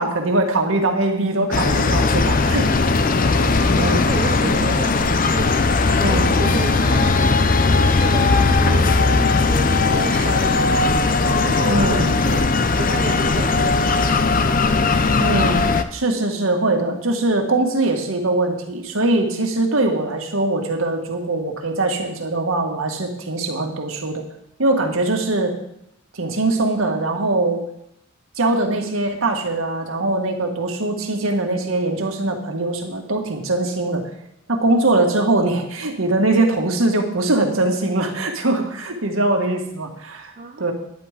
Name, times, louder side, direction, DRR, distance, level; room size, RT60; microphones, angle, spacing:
voice 1, 0.0-2.7 3.7-4.1 4.4-4.6 5.9-6.3 11.7-12.1 15.2-15.7 15.9-24.2 24.6-25.6 26.1-27.6 28.4-34.0 34.5-40.3 40.6-40.7, right 2 dB, 85° right, 2 dB, 1.9 m, -21 dB
sound 1, 1.5-15.8, left 3 dB, 40° left, 0.6 m, -18 dB
voice 2, 3.2-5.5 6.0-10.9 11.2-14.5 40.4-40.7, right 3 dB, 40° right, 4 dB, 0.7 m, -31 dB
10.5 x 9.6 x 5.1 m, 0.77 s
head